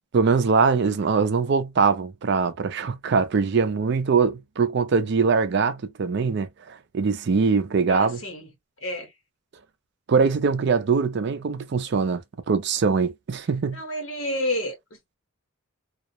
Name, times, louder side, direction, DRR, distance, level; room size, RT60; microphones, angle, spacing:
voice 1, 0.1-8.2 10.1-12.2 12.5-13.8, right 5 dB, 55° right, 0.4 m, -22 dB
voice 2, 7.9-8.5 8.8-9.1 13.7-15.2, left 1 dB, 65° left, 1.2 m, -30 dB
2.3 x 2.0 x 2.7 m
head